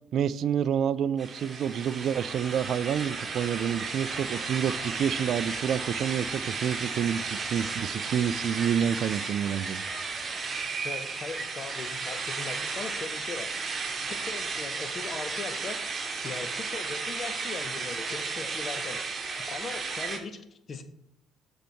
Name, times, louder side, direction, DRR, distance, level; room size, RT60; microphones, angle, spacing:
voice 1, 0.1-9.8, right 8 dB, 55° right, 0.3 m, -28 dB
sound 1, 1.2-20.2, right 4 dB, 35° right, 1.4 m, -34 dB
voice 2, 10.8-13.5 13.8-15.9 16.2-19.0 19.3-20.8, left 4 dB, 40° left, 0.9 m, -39 dB
6.8 x 4.4 x 4.6 m
hypercardioid pair, 55°, 0 cm